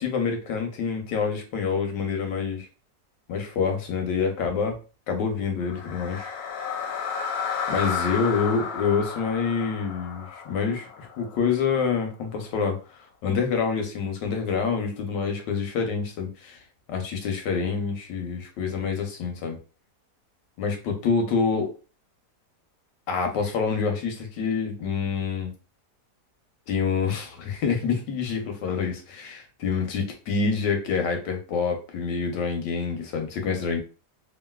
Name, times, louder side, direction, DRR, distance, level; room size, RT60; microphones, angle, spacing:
voice 1, 0.0-2.7 3.3-4.8 5.1-6.3 7.7-12.8 13.2-16.6 16.9-19.6 20.6-21.7 23.1-25.5 26.7-33.8, left 5 dB, 90° left, 4 dB, 1.4 m, -27 dB
sound 1, 5.6-11.8, left 6 dB, 70° left, 1.0 m, -32 dB
3.0 x 2.5 x 2.2 m, 0.34 s
omnidirectional pair, 1.8 m